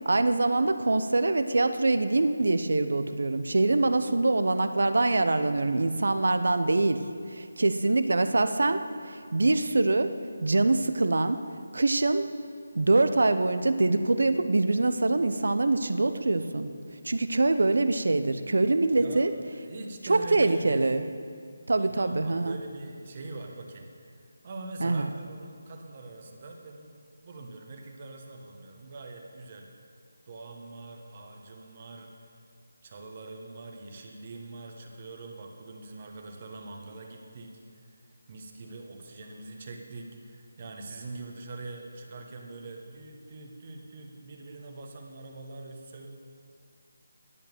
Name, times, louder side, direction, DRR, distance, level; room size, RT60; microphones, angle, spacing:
voice 1, 0.0-7.0 7.3-10.1 10.4-11.4 11.7-12.3 12.7-16.7 17.0-19.3 20.1-21.0 21.7-22.5 24.8-25.1, right 2 dB, 70° right, 10 dB, 0.7 m, -24 dB
voice 2, 18.9-19.3 19.6-20.9 21.8-23.9 24.4-26.9 27.2-29.7 30.3-32.1 32.8-38.0 38.3-46.1, right 2 dB, 35° right, 2 dB, 1.2 m, -43 dB
11.0 x 8.7 x 6.8 m, 2.2 s
figure-of-eight pair, 160°, 0 cm